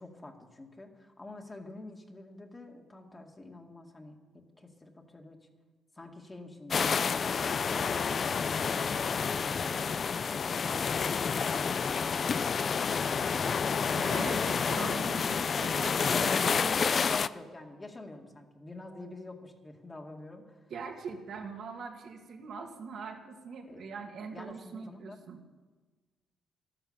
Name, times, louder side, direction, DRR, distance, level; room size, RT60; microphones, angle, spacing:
voice 1, 0.0-5.4 5.9-10.3 14.5-15.7 16.1-20.7 23.7-23.9 24.3-25.2, left 2 dB, 20° left, 2 dB, 2.1 m, -46 dB
sound 1, 6.7-17.3, left 6 dB, 45° left, 0.4 m, -29 dB
voice 2, 13.7-15.2 15.6-16.5 20.7-25.4, right 5 dB, 65° right, 2 dB, 2.0 m, -42 dB
12.5 x 12.0 x 7.2 m, 1.3 s
cardioid pair, 90°, 0 cm